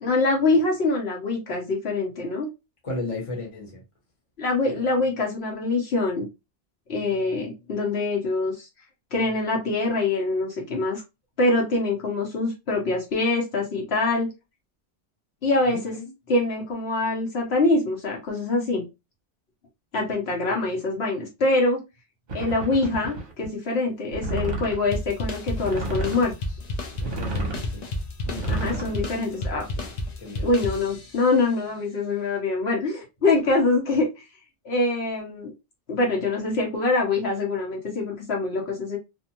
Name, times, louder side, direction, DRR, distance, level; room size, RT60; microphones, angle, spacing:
voice 1, 0.0-2.5 4.4-6.3 6.9-8.7 9.1-11.0 11.4-14.3 15.4-16.0 16.3-18.8 19.9-21.8 22.3-26.3 28.5-29.6 30.4-34.2 34.6-35.5 35.9-39.0, left 2 dB, 65° left, 1.1 m, -24 dB
voice 2, 2.8-3.8 15.7-16.1 20.5-20.6 27.0-27.9 28.2-30.5, left 2 dB, 30° left, 1.0 m, -36 dB
sound 1, 22.3-23.5 24.1-24.9 25.5-26.3 26.9-27.7 28.3-29.0, right 3 dB, 45° right, 0.8 m, -31 dB
sound 2, 24.9-31.3, left 1 dB, 45° left, 0.6 m, -32 dB
2.6 x 2.2 x 2.8 m
omnidirectional pair, 1.2 m